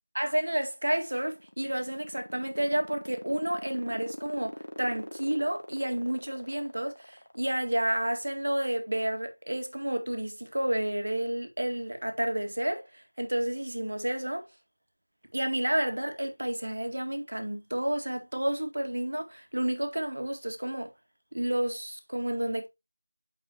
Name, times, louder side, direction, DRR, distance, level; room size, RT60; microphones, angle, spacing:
voice 1, 0.1-14.5 15.3-20.9 21.3-22.7, right 1 dB, 65° right, 2.0 m, -30 dB
sound 1, 1.2-7.8, left 1 dB, 80° left, 1.8 m, -42 dB
8.8 x 6.0 x 2.9 m
figure-of-eight pair, 175°, 0 cm